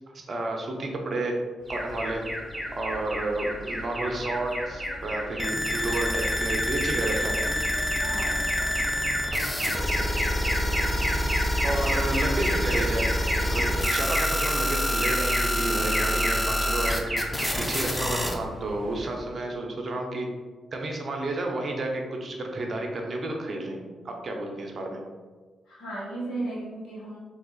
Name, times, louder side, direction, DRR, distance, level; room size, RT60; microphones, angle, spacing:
voice 1, 0.1-1.3 1.7-2.2 2.7-7.4 11.6-13.1 13.4-17.1 17.6-20.3 20.7-25.0, right 2 dB, 50° right, 1 dB, 0.6 m, -31 dB
Alarm, 1.7-19.3, equal, 20° right, 1.2 m, -32 dB
sound 1, 5.4-18.3, left 1 dB, 15° left, 0.6 m, -27 dB
voice 2, 7.9-8.5 10.9-11.2 25.7-27.2, right 2 dB, 70° left, -7 dB, 1.1 m, -36 dB
3.6 x 2.7 x 2.4 m, 1.4 s
hypercardioid pair, 40°, 0 cm